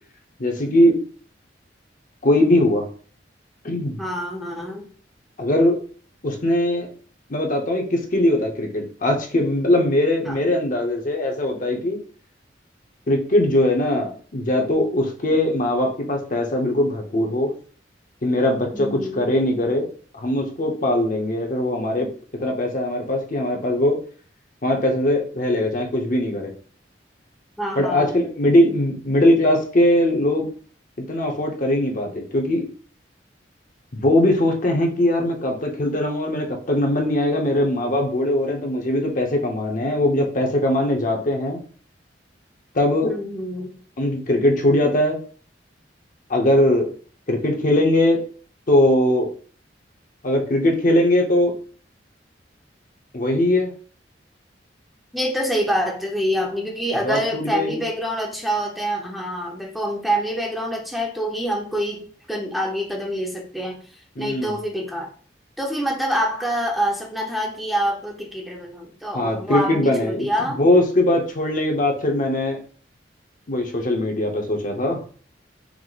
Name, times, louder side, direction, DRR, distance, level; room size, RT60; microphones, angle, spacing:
voice 1, 0.4-1.0 2.2-2.9 3.6-4.0 5.4-5.8 6.2-6.9 7.3-12.0 13.1-17.5 18.2-19.9 20.1-22.1 22.4-24.0 24.6-26.5 27.8-30.5 31.1-32.6 33.9-41.6 42.7-43.1 44.0-45.2 46.3-46.9 47.3-48.2 48.7-49.3 50.2-51.5 53.1-53.7 57.0-57.8 64.2-64.6 69.1-72.6 73.5-75.0, left 1 dB, 50° left, 2 dB, 0.8 m, -20 dB
voice 2, 4.0-4.9 10.2-10.4 18.7-19.3 27.6-28.2 43.0-43.8 55.1-63.8 64.2-65.1 65.6-70.6, equal, ahead, -1 dB, 0.6 m, -26 dB
4.7 x 2.1 x 3.9 m, 0.43 s
head